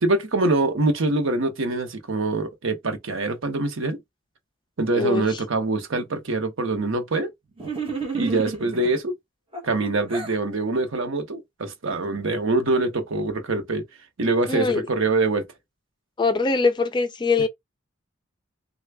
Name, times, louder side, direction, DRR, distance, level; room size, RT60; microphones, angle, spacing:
voice 1, 0.0-4.0 4.8-7.3 8.1-9.2 9.6-13.8 14.2-15.5, right 2 dB, 80° right, 0.8 m, -24 dB
voice 2, 4.9-5.3 14.5-14.9 16.2-17.5, left 4 dB, 20° left, 0.4 m, -22 dB
sound 1, 7.6-8.9 9.5-10.4, right 4 dB, 30° right, 1.1 m, -31 dB
3.3 x 2.3 x 3.3 m
head